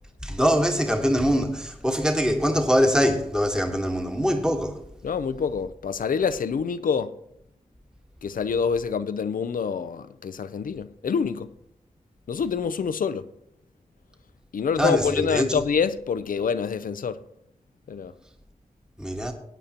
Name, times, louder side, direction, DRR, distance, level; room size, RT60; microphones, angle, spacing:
voice 1, 0.2-4.8 14.8-15.6 19.0-19.3, equal, 5° right, 1.4 m, -23 dB
voice 2, 5.0-7.2 8.2-11.5 12.3-13.3 14.5-17.2 17.9-18.1, left 6 dB, 90° left, 0.5 m, -26 dB
17.0 x 9.1 x 2.9 m
cardioid pair, 50°, 14 cm